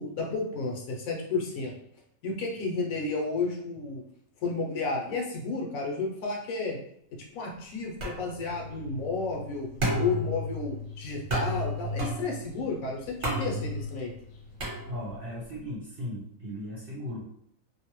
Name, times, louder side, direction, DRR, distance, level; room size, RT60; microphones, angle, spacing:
voice 1, 0.0-1.7 2.2-4.0 4.4-6.8 7.1-9.7 10.0-14.1, left 3 dB, 70° left, -1 dB, 0.9 m, -32 dB
sound 1, 8.0-15.4, equal, 45° right, 1.0 m, -33 dB
voice 2, 14.9-17.2, equal, 65° right, -7 dB, 0.5 m, -37 dB
2.6 x 2.1 x 2.9 m, 0.72 s
omnidirectional pair, 1.6 m